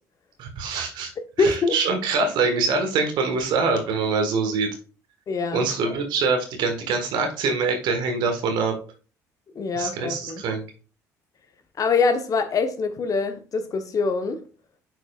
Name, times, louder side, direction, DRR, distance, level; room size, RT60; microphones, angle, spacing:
voice 1, 0.4-1.1 1.4-4.8 5.5-8.7 9.7-10.6, right 4 dB, 60° right, 1.5 m, -24 dB
voice 2, 1.4-1.8 5.3-6.0 9.5-10.5 11.8-14.4, left 4 dB, 40° left, 1.0 m, -24 dB
9.1 x 4.7 x 2.4 m
hypercardioid pair, 55°, 9 cm